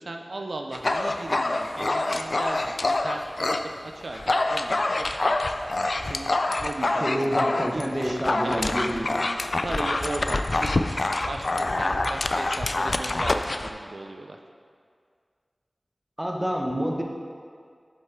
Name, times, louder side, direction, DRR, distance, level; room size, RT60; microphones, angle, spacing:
voice 1, 0.0-5.4 6.0-8.7 9.6-14.4, right 2 dB, 85° right, 3 dB, 0.4 m, -37 dB
Dog, 0.7-3.7 4.0-13.7, left 2 dB, 70° left, 0.3 m, -26 dB
voice 2, 7.0-9.1 16.2-17.0, equal, 20° right, 0 dB, 0.9 m, -27 dB
7.7 x 5.5 x 3.6 m, 2.1 s
wide cardioid pair, 45°, 0 cm